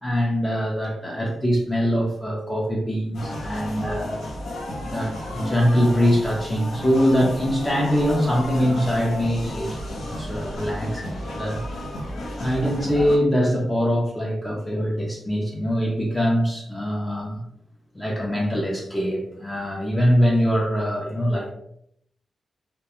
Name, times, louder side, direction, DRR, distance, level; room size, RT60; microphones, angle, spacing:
voice 1, 0.0-4.2 4.8-11.6 12.4-17.4 17.9-21.5, equal, 10° left, -2 dB, 0.4 m, -23 dB
sound 1, 3.1-13.2, left 1 dB, 90° left, 0.6 m, -33 dB
2.3 x 2.1 x 2.8 m, 0.72 s
wide cardioid pair, 135°, 0 cm